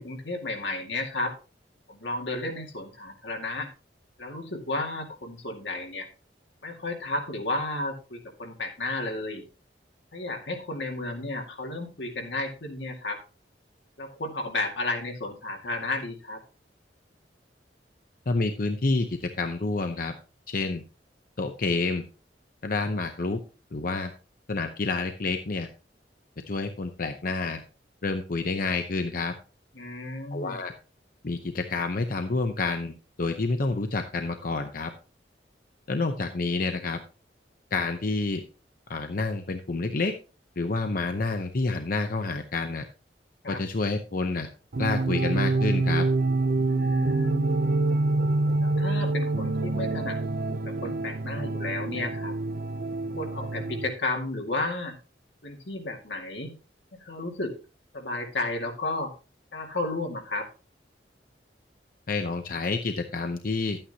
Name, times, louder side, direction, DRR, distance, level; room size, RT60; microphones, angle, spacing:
voice 1, 0.0-1.3 1.9-3.7 4.2-6.1 6.6-9.4 10.1-13.2 14.0-16.4 29.8-30.6 43.4-43.6 46.7-47.6 48.6-50.2 50.5-52.3 53.2-55.0 55.4-56.5 57.0-57.6 57.9-59.1 59.5-60.5, left 2 dB, 85° left, 2 dB, 2.1 m, -33 dB
voice 2, 18.3-20.1 20.5-20.8 21.4-22.0 22.6-23.4 23.7-24.1 24.5-25.7 26.5-27.6 28.0-29.3 30.3-30.7 31.2-34.9 35.9-37.0 37.7-38.4 38.9-40.1 40.6-42.8 43.5-44.5 44.8-46.1 62.1-63.8, left 3 dB, 55° left, 6 dB, 0.7 m, -28 dB
sound 1, 44.7-53.9, right 2 dB, 55° right, 0.5 m, -26 dB
11.5 x 8.9 x 2.9 m, 0.33 s
head